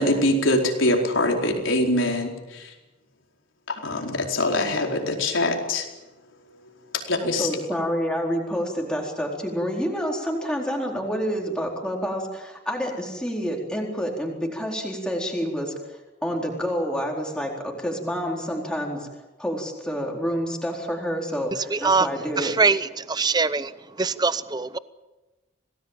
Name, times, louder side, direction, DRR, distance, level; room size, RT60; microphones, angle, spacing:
voice 1, 0.0-2.7 3.7-5.9 7.1-7.5, left 1 dB, 90° left, 1 dB, 4.7 m, -23 dB
voice 2, 7.2-15.7 16.2-19.1 19.4-22.6, equal, 5° left, -1 dB, 4.2 m, -28 dB
voice 3, 21.7-22.1 22.4-23.7 24.0-24.8, right 4 dB, 20° right, 14 dB, 0.7 m, -22 dB
27.0 x 19.0 x 7.4 m, 1.1 s
head